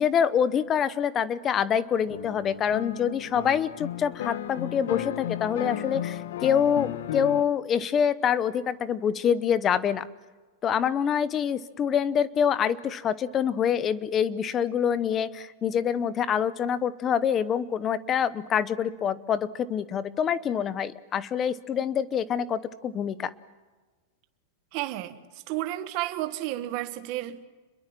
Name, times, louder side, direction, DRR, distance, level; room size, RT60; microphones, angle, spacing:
voice 1, 0.0-10.1 10.6-23.3, left 8 dB, 15° left, 0.8 m, -26 dB
sound 1, 2.1-7.4, left 11 dB, 60° left, 1.2 m, -34 dB
voice 2, 24.7-25.2 25.5-27.5, right 15 dB, 30° right, 1.6 m, -32 dB
29.5 x 22.0 x 7.6 m
supercardioid pair, 180°, 0 cm